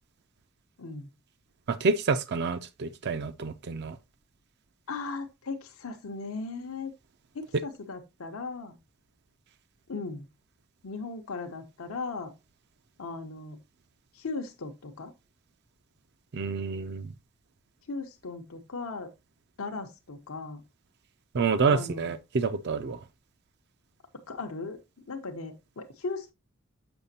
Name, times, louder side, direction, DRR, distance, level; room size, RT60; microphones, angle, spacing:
voice 1, 1.7-4.0 16.3-17.1 21.3-23.0, right 4 dB, 50° right, 0.4 m, -28 dB
voice 2, 4.9-6.9 7.3-8.8 9.9-10.3 10.8-12.3 13.0-13.6 14.1-15.1 17.9-19.1 19.6-20.6 21.7-22.1 24.3-24.8 25.1-26.3, left 3 dB, 75° left, 0.8 m, -37 dB
6.9 x 5.8 x 2.7 m
head